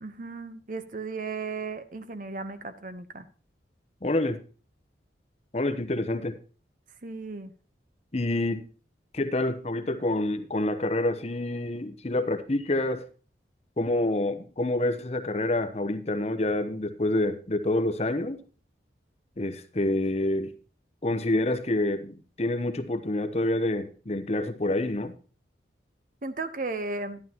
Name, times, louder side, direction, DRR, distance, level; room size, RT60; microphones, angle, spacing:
voice 1, 0.0-3.3 7.0-7.5 26.2-27.2, right 3 dB, 45° right, 10 dB, 0.9 m, -35 dB
voice 2, 4.0-4.4 5.5-6.4 8.1-8.7 9.1-13.0 13.8-18.4 19.4-20.5 21.0-25.1, left 1 dB, 35° left, 9 dB, 0.8 m, -27 dB
11.5 x 11.0 x 2.9 m, 0.38 s
head